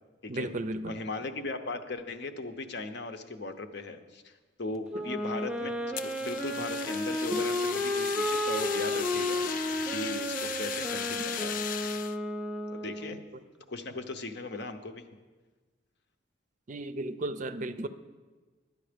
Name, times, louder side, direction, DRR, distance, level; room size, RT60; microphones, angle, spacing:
voice 1, 0.3-1.0 4.9-5.0 7.3-7.4 13.3-13.4 16.7-17.9, right 2 dB, 40° right, 12 dB, 0.5 m, -34 dB
voice 2, 0.9-4.3 4.6-11.5 12.7-13.2 13.7-15.0, left 3 dB, 60° left, 8 dB, 0.8 m, -38 dB
Wind instrument woodwind instrument, 4.9-13.2, left 1 dB, 5° right, 0.7 m, -32 dB
Fire, 5.9-12.2, left 9 dB, 45° left, 0.3 m, -37 dB
12.5 x 9.6 x 5.1 m, 1.3 s
head